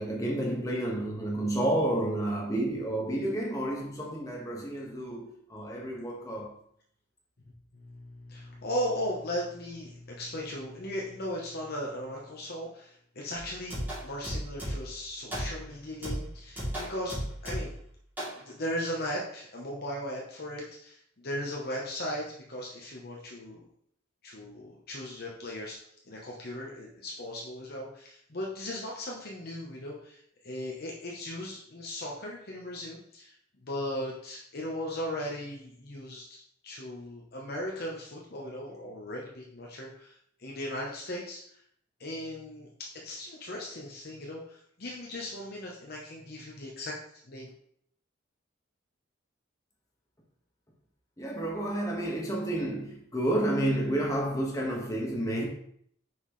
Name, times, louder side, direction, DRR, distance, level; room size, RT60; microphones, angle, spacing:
voice 1, 0.0-6.5 51.2-55.5, right 1 dB, 15° left, 1.5 m, -30 dB
voice 2, 7.7-17.7 18.3-23.7 24.2-25.8 26.1-33.3 33.6-41.6 42.0-46.9 47.3-47.5, left 1 dB, 50° left, 1.0 m, -37 dB
sound 1, 13.4-15.0 15.3-15.7 16.0-17.8 18.2-18.4, equal, 10° right, 2.9 m, -35 dB
6.2 x 5.6 x 3.2 m
head